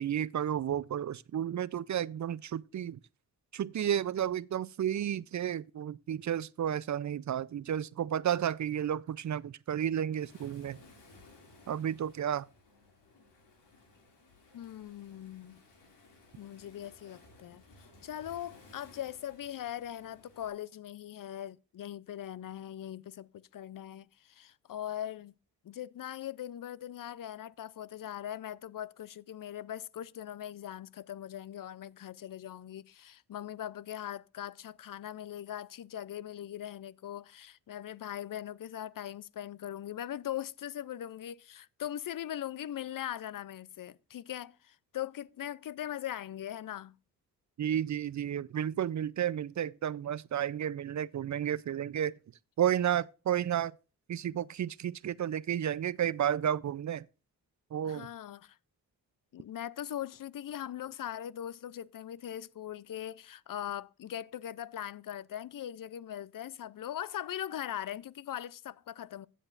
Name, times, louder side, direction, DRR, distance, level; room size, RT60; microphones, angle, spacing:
voice 1, 0.0-3.0 3.5-10.8 11.7-12.5 47.6-52.1 52.6-53.7 54.1-57.1 57.7-58.1, right 10 dB, 45° right, 0.5 m, -32 dB
Waves surf, 10.1-20.5, left 2 dB, 85° left, 2.7 m, -59 dB
voice 2, 14.5-15.6 16.4-25.3 25.6-46.9 57.8-58.6 59.3-69.3, left 11 dB, 55° left, 0.5 m, -40 dB
15.5 x 7.7 x 2.5 m
supercardioid pair, 40°, 41 cm